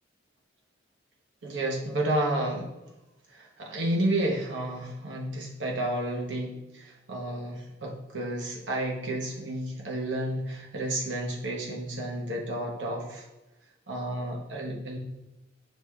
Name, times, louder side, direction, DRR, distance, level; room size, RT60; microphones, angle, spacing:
voice 1, 1.4-2.7 3.3-13.3 13.9-15.0, right 1 dB, 75° right, -1 dB, 0.9 m, -31 dB
6.2 x 2.3 x 3.1 m, 1.0 s
head